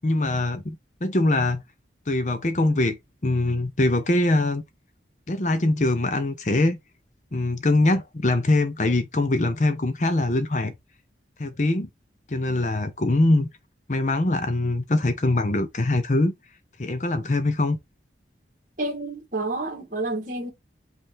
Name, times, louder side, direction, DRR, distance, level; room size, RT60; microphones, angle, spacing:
voice 1, 0.0-1.6 2.1-3.0 3.2-4.6 5.3-6.8 7.3-10.7 11.4-11.9 12.3-13.5 13.9-16.3 16.8-17.8, left 2 dB, 40° left, 0.7 m, -23 dB
voice 2, 18.8-20.5, right 2 dB, 45° right, 1.8 m, -29 dB
5.4 x 2.6 x 3.6 m
head